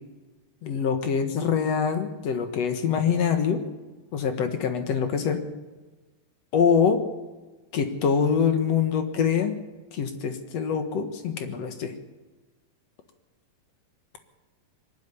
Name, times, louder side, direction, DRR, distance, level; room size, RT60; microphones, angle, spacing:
voice 1, 0.6-3.6 4.1-5.4 6.5-7.0 7.7-9.6 9.9-11.9, left 6 dB, 55° left, 8 dB, 2.0 m, -24 dB
22.0 x 12.5 x 9.7 m, 1.2 s
omnidirectional pair, 4.2 m